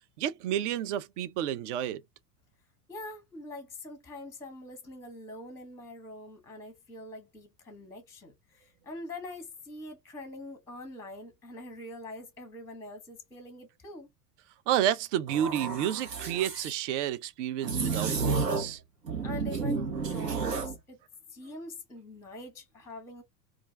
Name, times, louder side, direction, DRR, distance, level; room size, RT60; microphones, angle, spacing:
voice 1, 0.2-2.0 14.7-18.8, right 10 dB, 50° right, 0.4 m, -30 dB
voice 2, 2.9-14.1 19.2-21.0 21.3-23.2, left 2 dB, 5° left, 0.7 m, -44 dB
sound 1, 15.3-16.8 17.6-18.8 19.1-20.8, right 4 dB, 85° right, 0.8 m, -31 dB
2.4 x 2.2 x 3.1 m
figure-of-eight pair, 80°, 47 cm